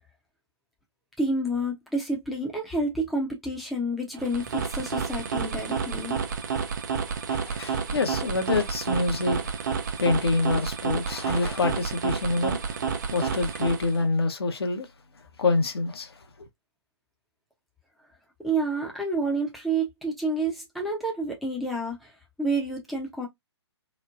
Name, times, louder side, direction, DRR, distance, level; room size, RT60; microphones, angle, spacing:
voice 1, 1.2-6.1 18.4-22.1 22.4-23.3, right 2 dB, ahead, 0.6 m, -29 dB
sound 1, 4.1-14.1, right 6 dB, 40° right, 0.5 m, -30 dB
voice 2, 7.1-12.8 13.1-14.9 15.4-16.5, left 3 dB, 60° left, 0.8 m, -27 dB
3.1 x 2.1 x 2.3 m
figure-of-eight pair, 135°, 14 cm